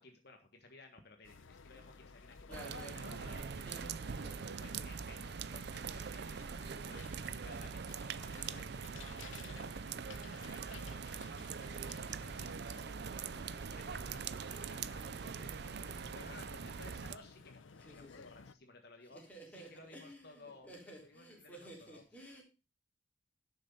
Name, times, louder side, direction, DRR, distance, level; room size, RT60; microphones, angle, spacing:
voice 1, 0.0-7.8 8.1-22.0, left 3 dB, 55° left, 1.5 m, -58 dB
sound 1, 1.2-18.5, left 5 dB, 75° left, 0.7 m, -56 dB
voice 2, 2.5-3.0 3.6-4.5 17.8-18.3 19.1-22.4, right 1 dB, 5° left, 3.3 m, -53 dB
sound 2, 2.5-17.2, right 6 dB, 55° right, 0.5 m, -43 dB
11.0 x 6.5 x 5.5 m
head